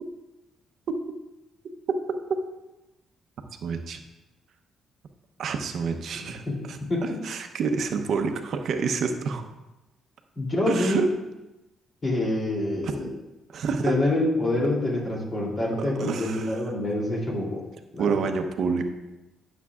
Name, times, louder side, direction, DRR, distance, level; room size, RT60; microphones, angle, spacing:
voice 1, 3.6-4.0 5.4-9.5 10.7-11.1 12.8-12.9 13.5-14.0 15.8-16.6 18.0-18.8, right 5 dB, 65° right, 6 dB, 0.8 m, -28 dB
voice 2, 6.5-7.2 10.4-11.0 12.0-13.1 13.8-17.7 17.9-18.2, left 2 dB, 35° left, -2 dB, 2.9 m, -26 dB
12.0 x 7.1 x 2.4 m, 1.0 s
cardioid pair, 90°, 0 cm